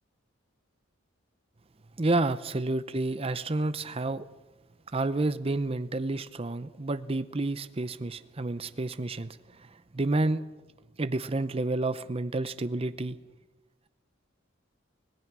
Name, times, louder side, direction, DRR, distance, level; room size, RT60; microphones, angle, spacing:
voice 1, 2.0-4.3 4.9-9.7 9.9-10.4 11.0-13.2, right 2 dB, 30° right, 12 dB, 0.6 m, -30 dB
25.0 x 18.5 x 6.1 m, 1.1 s
head